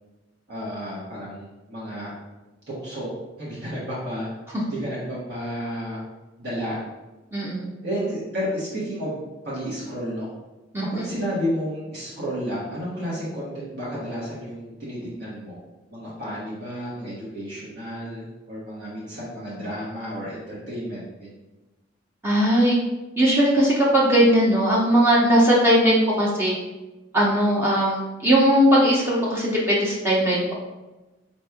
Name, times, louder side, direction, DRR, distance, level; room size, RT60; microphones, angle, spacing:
voice 1, 0.5-2.1 2.7-3.1 3.4-4.3 4.7-6.0 6.4-6.8 7.8-9.2 9.4-10.3 10.8-15.6 15.9-21.3, equal, 60° right, -8 dB, 1.2 m, -31 dB
voice 2, 7.3-7.7 10.7-11.1 22.2-22.8 23.2-26.5 27.1-30.5, equal, 15° right, -5 dB, 0.6 m, -19 dB
4.2 x 3.2 x 3.4 m, 1.1 s
head